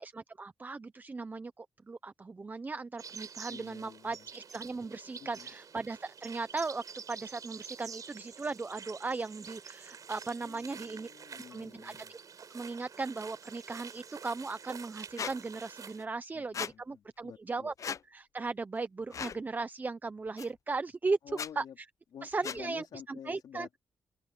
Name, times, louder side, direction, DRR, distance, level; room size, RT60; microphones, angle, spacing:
voice 1, 0.0-11.1 11.5-12.2 12.5-21.2 21.6-21.7 22.2-22.8 23.3-23.8, right 3 dB, 25° right, 0.6 m, -37 dB
sound 1, 3.0-16.1, right 6 dB, 50° right, 4.9 m, -48 dB
voice 2, 3.5-4.3 5.2-5.5 10.4-12.1 16.3-17.7 21.2-21.8 22.1-23.7, left 8 dB, 70° left, 3.6 m, -50 dB
Squeak, 15.2-15.3 16.5-16.7 17.8-18.0 19.1-19.4 20.4-20.5 21.3-21.5 22.4-22.6, left 7 dB, 45° left, 0.4 m, -37 dB
open air
cardioid pair, 120°, 8 cm